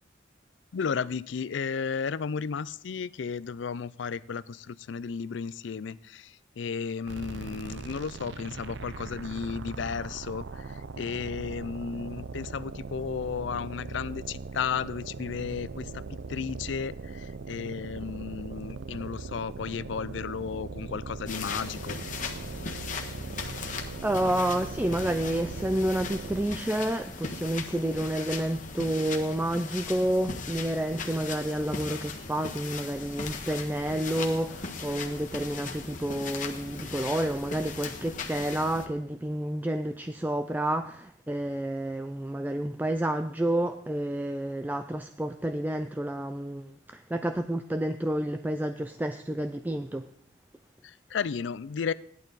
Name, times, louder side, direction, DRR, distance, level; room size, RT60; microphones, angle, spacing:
voice 1, 0.7-16.0 16.3-22.0 50.8-51.9, left 6 dB, 70° left, 0.4 m, -34 dB
sound 1, 7.1-26.7, right 4 dB, 65° right, 0.5 m, -40 dB
sound 2, 21.3-38.9, left 4 dB, 40° left, 1.4 m, -38 dB
voice 2, 24.0-50.1, right 1 dB, 10° right, 0.4 m, -30 dB
16.0 x 11.5 x 4.0 m
head